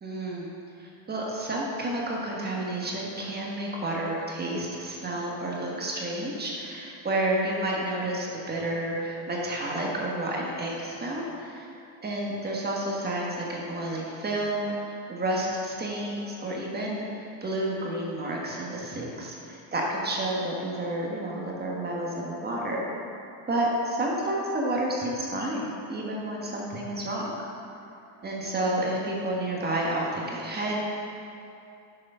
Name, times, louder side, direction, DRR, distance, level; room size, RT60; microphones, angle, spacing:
voice 1, 0.0-0.5 0.8-11.7 12.0-22.8 23.5-27.3 28.2-30.7, right 1 dB, 20° right, -3 dB, 1.4 m, -30 dB
6.9 x 6.2 x 5.5 m, 2.7 s
cardioid pair, 130°, 47 cm